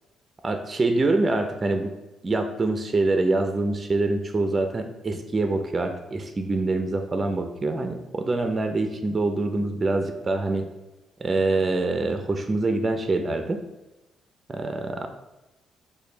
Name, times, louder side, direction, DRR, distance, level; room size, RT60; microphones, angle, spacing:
voice 1, 0.4-1.9 2.2-10.7 11.2-13.6 14.5-15.1, right 2 dB, 35° right, 6 dB, 0.5 m, -25 dB
5.0 x 2.3 x 4.4 m, 1.0 s
supercardioid pair, 65°, 0 cm